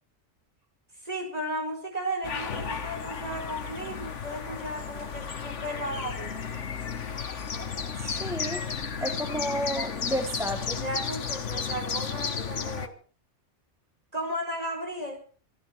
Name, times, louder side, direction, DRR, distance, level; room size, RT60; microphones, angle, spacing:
voice 1, 1.0-6.4 10.7-13.0 14.1-15.2, right 1 dB, 30° right, 3 dB, 4.7 m, -35 dB
sound 1, 2.2-12.9, left 6 dB, 80° left, 1.7 m, -33 dB
voice 2, 7.9-8.7 9.0-10.8, equal, ahead, 5 dB, 1.6 m, -32 dB
24.5 x 12.0 x 4.5 m, 0.40 s
omnidirectional pair, 1.2 m